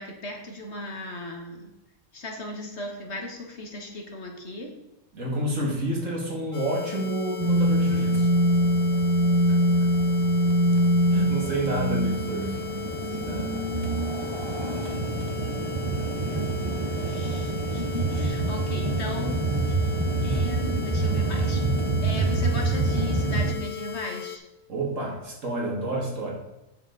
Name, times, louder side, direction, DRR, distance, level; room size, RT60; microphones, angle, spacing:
voice 1, 0.0-1.7 2.1-4.7 16.2-19.9 20.2-21.6 22.0-24.4, left 1 dB, 55° left, 2 dB, 1.8 m, -37 dB
voice 2, 5.1-8.3 9.5-9.6 11.1-12.6 12.9-13.7 24.7-26.4, right 1 dB, 65° right, -2 dB, 2.7 m, -30 dB
sound 1, 6.5-24.4, left 13 dB, 70° left, 1.1 m, -37 dB
sound 2, 7.4-23.5, right 1 dB, 25° right, 0.6 m, -25 dB
8.9 x 7.1 x 4.1 m, 0.96 s
omnidirectional pair, 1.4 m